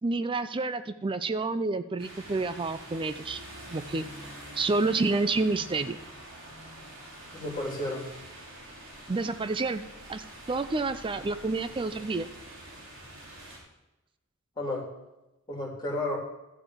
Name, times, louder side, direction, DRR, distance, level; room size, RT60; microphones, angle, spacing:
voice 1, 0.0-3.4 3.7-4.1 4.5-6.0 9.1-9.8 10.1-12.3, right 3 dB, 25° right, 12 dB, 0.4 m, -29 dB
sound 1, 2.0-13.6, right 1 dB, 70° right, 3.7 m, -46 dB
voice 2, 7.3-8.1 14.6-14.9 15.5-16.2, left 1 dB, 20° left, -3 dB, 2.9 m, -32 dB
13.0 x 4.5 x 7.9 m, 0.97 s
head